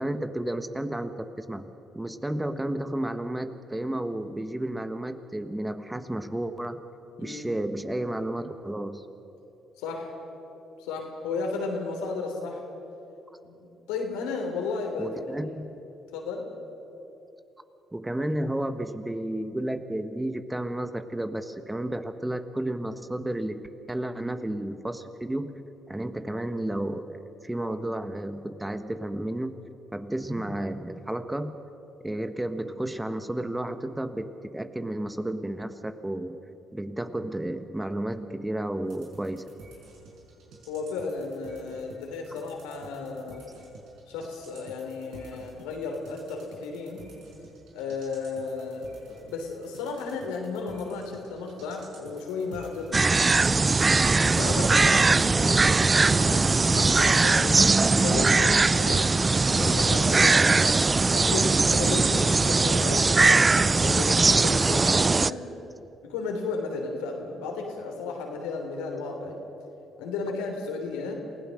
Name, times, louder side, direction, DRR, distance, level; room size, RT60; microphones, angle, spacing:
voice 1, 0.0-1.7 1.9-6.8 7.2-9.0 15.0-15.8 17.9-23.6 23.9-25.5 25.9-29.5 29.9-31.6 32.0-36.4 36.7-39.4 59.6-59.7 62.0-62.3 65.5-65.9, right 1 dB, 10° right, 9 dB, 1.4 m, -32 dB
voice 2, 9.8-10.1 10.8-12.6 13.4-15.1 16.1-16.5 40.7-43.5 44.1-47.0 47.7-53.1 54.2-60.7 61.1-65.4 66.0-69.4 70.0-71.1, left 4 dB, 80° left, 2 dB, 3.2 m, -34 dB
sound 1, 38.8-55.0, right 3 dB, 70° right, 5.0 m, -51 dB
sound 2, 52.9-65.3, right 3 dB, 30° right, 0.4 m, -20 dB
28.0 x 16.5 x 6.5 m, 3.0 s
hypercardioid pair, 50°, 0 cm